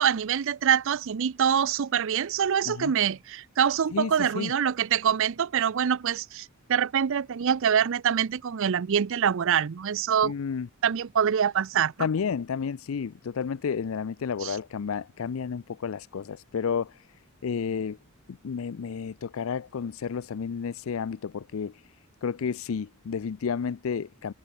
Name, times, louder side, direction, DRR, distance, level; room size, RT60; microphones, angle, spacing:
voice 1, 0.0-10.3 10.8-12.1 14.4-14.6, right 8 dB, 65° right, 0.5 m, -25 dB
voice 2, 3.9-4.5 10.2-10.7 12.0-17.1 17.4-18.0 18.3-21.8 22.2-24.3, left 6 dB, 70° left, 0.4 m, -31 dB
head